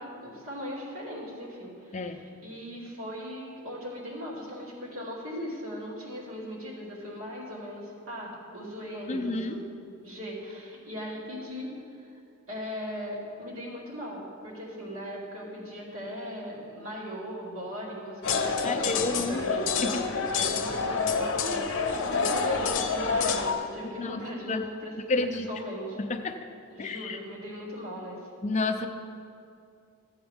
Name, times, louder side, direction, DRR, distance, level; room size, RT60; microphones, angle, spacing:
voice 1, 0.0-9.6 10.0-11.7 12.0-12.1 12.5-19.7 20.3-21.6 22.0-25.2 25.5-26.0 26.7-28.2, equal, 70° right, -6 dB, 2.6 m, -39 dB
voice 2, 9.1-9.6 18.6-19.4 19.8-19.9 24.0-24.2 24.5-24.6 25.1-25.5 26.0-26.5 26.8-27.2 28.4-28.9, left 3 dB, 35° left, 7 dB, 0.5 m, -30 dB
sound 1, 18.2-23.5, left 5 dB, 60° left, 0.7 m, -27 dB
13.5 x 7.9 x 3.5 m, 2.4 s
head